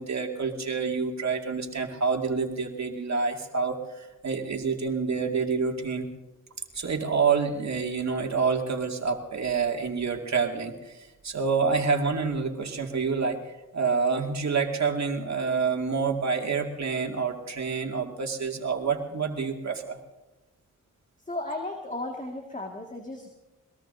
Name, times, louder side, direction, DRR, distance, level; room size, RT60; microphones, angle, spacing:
voice 1, 0.0-6.1 6.7-20.0, right 5 dB, 60° right, 2 dB, 2.4 m, -28 dB
voice 2, 21.3-23.3, left 2 dB, 25° left, 2 dB, 2.0 m, -35 dB
22.0 x 21.0 x 2.7 m, 1.1 s
cardioid pair, 65°, 31 cm